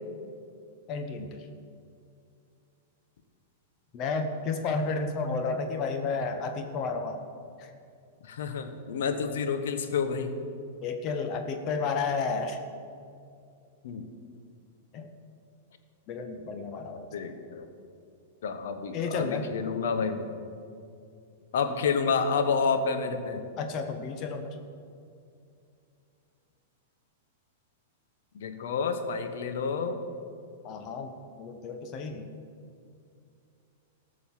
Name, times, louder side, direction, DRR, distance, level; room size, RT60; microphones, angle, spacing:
voice 1, 0.9-1.4 3.9-7.2 7.6-7.7 10.8-12.6 14.9-15.1 16.1-17.1 18.9-19.5 23.6-24.6 30.6-32.3, left 4 dB, 40° left, 6 dB, 1.0 m, -32 dB
voice 2, 8.2-10.4 13.8-14.1 17.1-17.7 18.4-20.3 21.5-23.4 28.3-30.0, left 5 dB, 75° left, 8 dB, 1.1 m, -29 dB
13.5 x 6.4 x 7.4 m, 2.4 s
hypercardioid pair, 130°, 0 cm